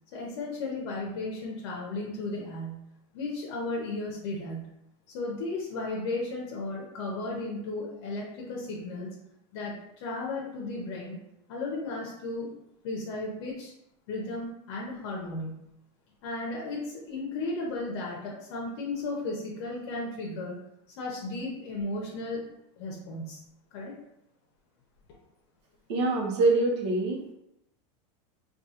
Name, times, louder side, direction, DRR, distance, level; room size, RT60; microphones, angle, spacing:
voice 1, 0.1-2.8 3.1-4.7 5.1-9.1 9.5-9.7 10.0-11.2 11.5-12.5 12.8-13.7 14.1-15.5 16.2-20.6 21.0-22.4 22.8-23.4 23.7-23.9, left 2 dB, 60° left, -3 dB, 0.7 m, -34 dB
voice 2, 25.9-27.3, right 2 dB, 65° right, 1 dB, 0.8 m, -25 dB
3.6 x 2.4 x 2.8 m, 0.83 s
supercardioid pair, 170°, 16 cm